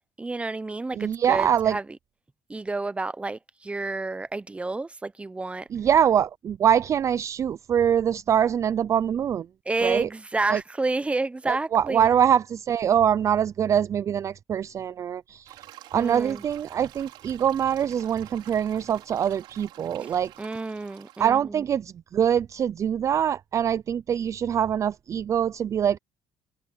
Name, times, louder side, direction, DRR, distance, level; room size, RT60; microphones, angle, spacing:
voice 1, 0.0-1.9 2.5-5.7 9.7-12.1 15.9-16.4 20.0-21.7, right 3 dB, 15° right, 0.8 m, -30 dB
voice 2, 1.0-1.8 5.7-9.5 9.8-10.1 10.5-10.6 11.5-15.6 15.9-20.3 21.2-26.0, right 9 dB, 40° right, 0.3 m, -24 dB
sound 1, 15.4-21.2, right 15 dB, 85° right, 4.4 m, -48 dB
cardioid pair, 110°, 8 cm